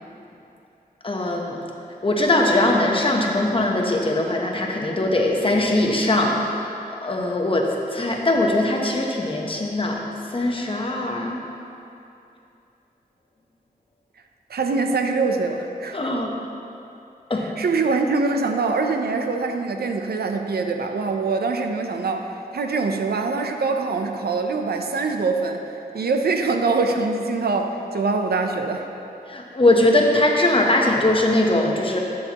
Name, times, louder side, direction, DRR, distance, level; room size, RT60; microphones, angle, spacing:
voice 1, 1.0-1.6 2.0-6.6 7.0-10.0 10.3-11.4 15.9-16.3 17.3-17.5 29.3-32.0, left 1 dB, 35° left, 0 dB, 1.0 m, -21 dB
voice 2, 14.5-16.1 17.3-25.6 25.9-28.9, right 4 dB, 80° right, 4 dB, 0.6 m, -24 dB
11.5 x 7.7 x 3.0 m, 2.8 s
wide cardioid pair, 105°, 16 cm